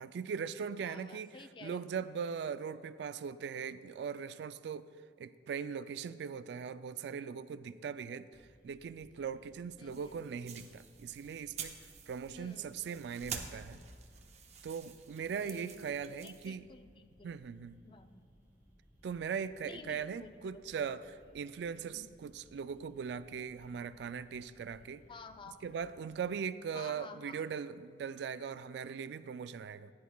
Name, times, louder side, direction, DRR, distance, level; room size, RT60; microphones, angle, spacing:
voice 1, 0.0-1.3 1.6-4.9 5.2-8.3 8.6-11.7 12.1-13.8 14.6-16.6 17.2-17.8 19.0-21.0 21.3-25.1 25.6-29.9, right 6 dB, 65° right, 14 dB, 0.3 m, -40 dB
voice 2, 0.8-1.9 9.8-10.2 12.3-13.1 15.4-15.8 16.2-17.4 17.8-18.2 19.6-20.9 21.9-22.1 25.1-25.6 26.7-27.4, left 4 dB, 30° left, 9 dB, 0.4 m, -52 dB
sound 1, 8.3-26.3, equal, 15° right, 1.9 m, -64 dB
sound 2, 9.9-16.5, right 6 dB, 40° right, 0.7 m, -48 dB
15.0 x 10.0 x 2.3 m, 2.1 s
head